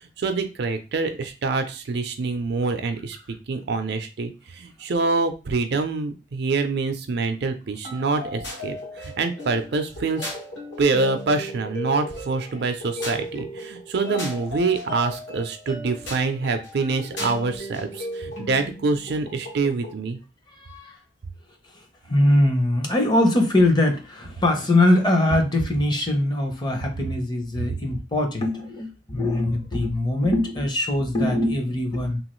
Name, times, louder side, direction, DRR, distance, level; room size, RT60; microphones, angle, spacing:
voice 1, 0.0-3.2 3.5-10.3 10.8-20.2, right 3 dB, 60° right, 7 dB, 0.4 m, -26 dB
sound 1, 7.8-20.0, left 1 dB, 75° left, 1.2 m, -36 dB
voice 2, 20.5-21.0 22.1-32.2, left 1 dB, 25° left, 3 dB, 0.6 m, -22 dB
3.0 x 2.3 x 3.0 m, 0.30 s
head